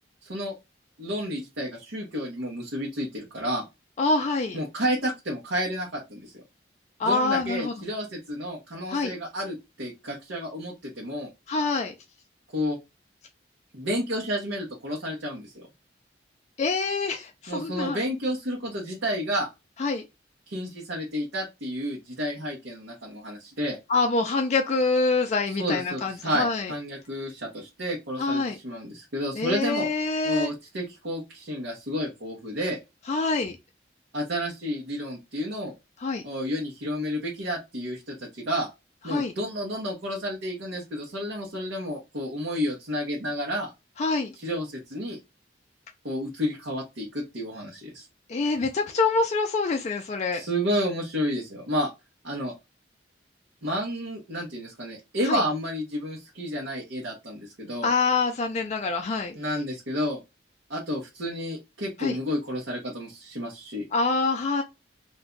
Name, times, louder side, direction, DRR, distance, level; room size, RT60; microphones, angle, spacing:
voice 1, 0.2-0.5 1.0-3.7 4.5-6.4 7.0-11.3 12.5-12.8 13.7-15.7 17.5-19.5 20.5-23.8 25.6-29.9 30.2-32.8 34.1-35.7 36.2-38.7 39.0-43.7 44.4-45.2 46.0-48.1 50.3-51.9 52.2-52.5 53.6-57.9 59.3-60.2 60.7-63.8, equal, 90° right, 0.9 m, -31 dB
voice 2, 4.0-4.6 7.0-7.7 8.9-9.1 11.5-11.9 16.6-18.0 19.8-20.1 23.9-26.7 28.2-28.6 29.4-30.5 33.1-33.6 36.0-36.2 39.1-39.3 44.0-44.3 48.3-50.4 55.3-55.4 57.8-59.4 62.0-62.2 63.9-64.6, left 3 dB, 35° left, 0.3 m, -25 dB
2.5 x 2.2 x 3.7 m
head